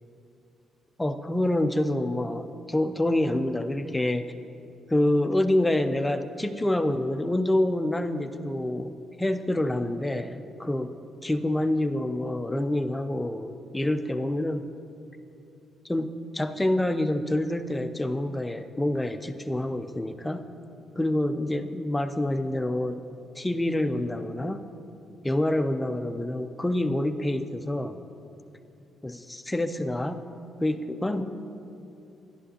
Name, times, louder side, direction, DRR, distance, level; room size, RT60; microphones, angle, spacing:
voice 1, 1.0-4.3 4.9-10.9 11.2-14.7 15.9-20.4 21.0-23.0 23.4-24.6 25.2-28.0 29.0-30.2 30.6-31.2, left 1 dB, 10° left, 9 dB, 0.5 m, -27 dB
11.0 x 11.0 x 2.8 m, 2.7 s
cardioid pair, 90°, 0 cm